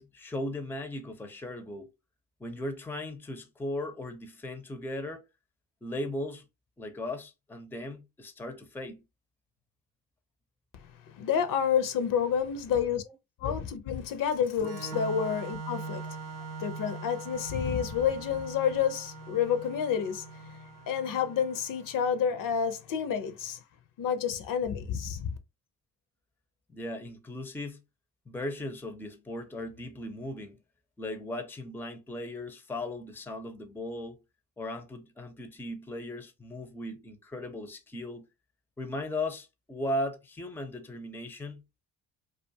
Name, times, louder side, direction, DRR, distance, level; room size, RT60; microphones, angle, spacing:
voice 1, 0.0-1.9 2.4-5.2 5.8-6.4 6.8-9.0 12.4-12.5 13.4-13.5 26.7-27.8 28.3-30.6 31.0-34.2 34.6-38.2 38.8-41.6, left 1 dB, 5° left, 0.5 m, -37 dB
voice 2, 11.1-13.0 13.4-16.0 16.6-23.6 24.0-25.3, left 8 dB, 65° left, 0.6 m, -29 dB
Organ, 14.6-22.1, right 4 dB, 90° right, 0.7 m, -42 dB
2.4 x 2.3 x 2.6 m
supercardioid pair, 70°, 35 cm